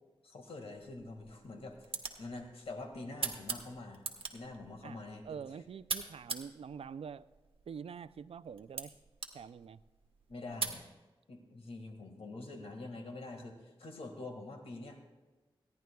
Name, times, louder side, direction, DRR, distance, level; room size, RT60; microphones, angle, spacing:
voice 1, 0.2-4.1 4.3-5.4 10.3-10.9 11.3-15.0, left 2 dB, 85° left, 4 dB, 1.8 m, -46 dB
sound 1, 0.7-10.8, right 4 dB, 70° right, 1.3 m, -44 dB
voice 2, 5.2-7.3 7.7-9.0 9.3-9.8, right 7 dB, 85° right, 15 dB, 0.4 m, -45 dB
29.0 x 10.5 x 2.3 m, 1.2 s
wide cardioid pair, 90°, 10 cm